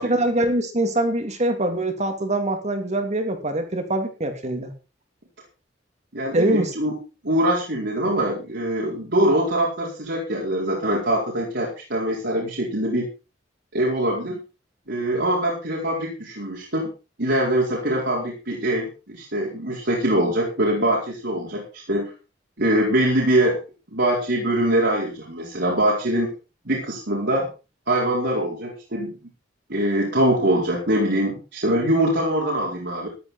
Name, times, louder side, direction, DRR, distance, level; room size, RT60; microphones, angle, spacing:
voice 1, 0.0-4.7 6.3-6.7, right 1 dB, 40° right, 6 dB, 2.9 m, -23 dB
voice 2, 6.1-7.0 7.2-13.1 13.7-14.4 14.9-16.9 17.2-22.1 22.6-23.6 23.9-26.3 26.6-27.5 27.9-29.1 29.7-33.1, right 1 dB, 60° right, -3 dB, 4.5 m, -23 dB
14.0 x 12.5 x 4.4 m, 0.31 s
head